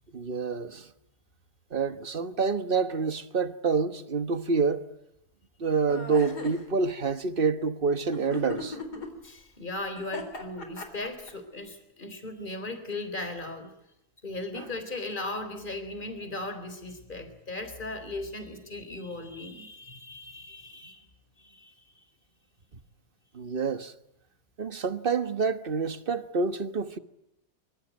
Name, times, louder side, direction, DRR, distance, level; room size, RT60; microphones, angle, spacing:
voice 1, 0.1-0.9 1.7-4.9 5.6-8.8 14.5-14.7 23.3-23.9 24.6-27.0, right 4 dB, 35° right, 1.4 m, -27 dB
sound 1, 5.9-6.6 8.1-9.1 10.0-11.3, left 3 dB, 80° left, 4.4 m, -37 dB
voice 2, 9.2-13.7 14.2-21.1 21.4-22.1, left 2 dB, 30° left, 4.1 m, -37 dB
25.0 x 25.0 x 9.3 m
omnidirectional pair, 1.7 m